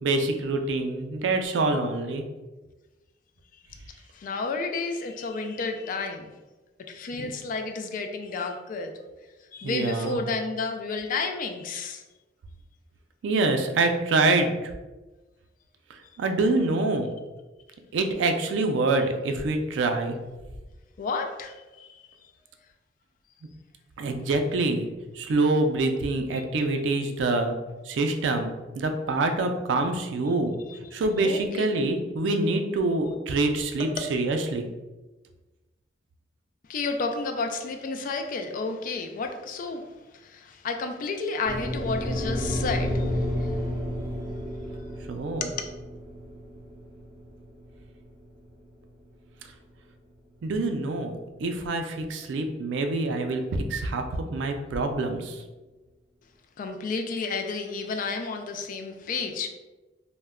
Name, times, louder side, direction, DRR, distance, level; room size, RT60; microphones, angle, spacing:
voice 1, 0.0-2.2 7.2-7.3 9.6-10.2 13.2-14.7 15.9-17.1 17.9-20.2 24.0-24.9 25.1-27.6 27.8-28.5 28.7-30.5 30.9-34.7 45.1-45.5 50.4-55.4, right 2 dB, 80° right, 5 dB, 0.3 m, -26 dB
voice 2, 4.1-6.3 6.9-8.9 9.5-12.0 21.0-21.9 26.4-26.5 31.2-31.7 36.7-39.8 40.1-43.5 45.4-45.5 56.6-59.5, left 4 dB, 50° left, 5 dB, 0.3 m, -31 dB
sound 1, 41.4-49.7, left 1 dB, 10° right, 0.9 m, -31 dB
2.1 x 2.1 x 3.4 m, 1.2 s
head